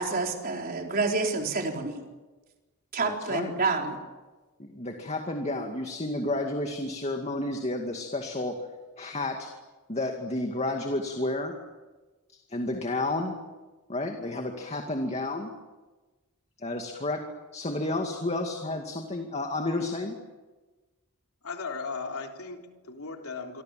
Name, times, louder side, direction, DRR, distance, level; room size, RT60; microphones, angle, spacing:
voice 1, 0.0-2.0 2.9-4.0, right 3 dB, 45° right, 1 dB, 4.4 m, -28 dB
voice 2, 3.0-3.5 4.6-8.6 9.0-9.5 9.9-11.5 12.3-13.4 13.9-15.5 16.6-20.1, left 2 dB, 30° left, 3 dB, 2.3 m, -31 dB
voice 3, 21.4-23.6, left 4 dB, 90° left, 2 dB, 3.7 m, -37 dB
27.0 x 25.0 x 7.7 m, 1.2 s
head